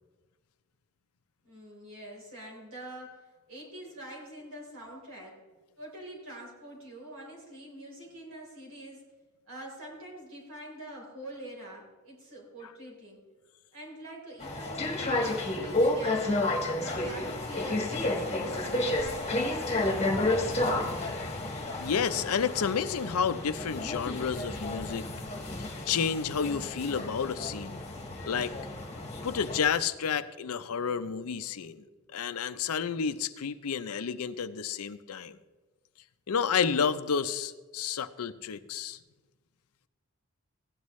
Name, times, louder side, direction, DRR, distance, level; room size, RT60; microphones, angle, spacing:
voice 1, 1.4-3.2 3.5-5.3 5.8-9.0 9.5-13.2 13.7-16.4 16.8-20.2, right 1 dB, 65° right, -3 dB, 3.7 m, -45 dB
sound 1, 14.4-29.6, left 2 dB, 30° left, 1.4 m, -31 dB
voice 2, 21.8-25.1 25.9-27.8 28.3-28.5 29.2-31.8 32.1-35.4 36.3-39.0, left 6 dB, 70° left, 12 dB, 0.5 m, -30 dB
16.0 x 9.7 x 3.1 m, 1.3 s
head